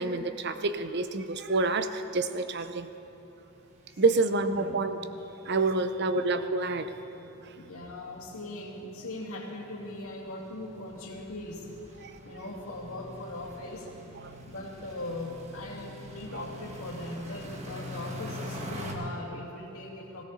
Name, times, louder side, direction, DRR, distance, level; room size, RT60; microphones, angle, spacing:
voice 1, 0.0-2.9 4.0-5.0 5.5-6.9 12.0-12.1 14.2-14.3 16.3-16.4, right 3 dB, 50° right, 10 dB, 0.7 m, -28 dB
sound 1, 1.8-1.9 2.2-2.4 2.7-2.8 3.1-18.9, equal, 30° right, 1.5 m, -45 dB
voice 2, 3.9-4.8 5.8-6.4 7.6-11.7 12.2-13.9 14.4-20.3, left 2 dB, 80° left, -1 dB, 2.4 m, -40 dB
17.5 x 16.0 x 4.2 m, 3.0 s
head